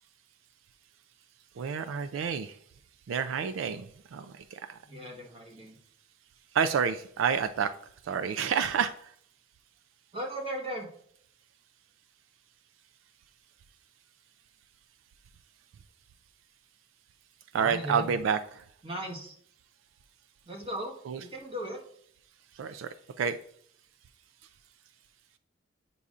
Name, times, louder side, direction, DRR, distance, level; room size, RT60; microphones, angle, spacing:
voice 1, 1.6-2.6 3.1-4.8 6.5-7.7 8.0-9.1 17.5-18.4 21.1-21.2 22.6-22.9 23.2-23.4, right 7 dB, 80° right, 10 dB, 0.3 m, -29 dB
voice 2, 4.8-5.8 10.1-10.9 17.5-18.2 18.8-19.4 20.4-21.8, right 1 dB, 30° right, 0 dB, 1.3 m, -37 dB
8.2 x 5.4 x 2.4 m, 0.65 s
head